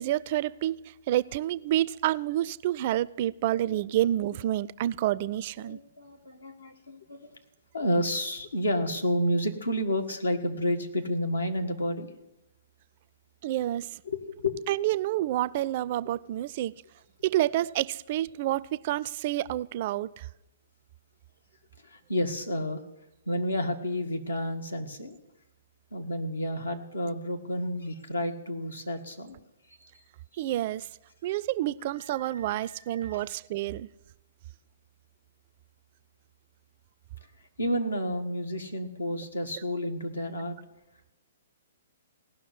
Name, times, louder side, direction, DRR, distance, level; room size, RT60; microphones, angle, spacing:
voice 1, 0.0-5.8 13.4-14.0 14.7-16.7 17.2-20.3 30.4-30.9 31.2-33.9, right 13 dB, 45° right, 0.4 m, -29 dB
voice 2, 3.5-4.1 5.6-7.4 7.7-12.1 14.0-14.6 21.8-22.8 23.2-25.2 25.9-29.4 29.8-29.9 30.3-30.4 32.3-33.2 37.6-40.6, left 1 dB, 85° left, 1.7 m, -31 dB
17.5 x 6.0 x 9.6 m
figure-of-eight pair, 120°, 0 cm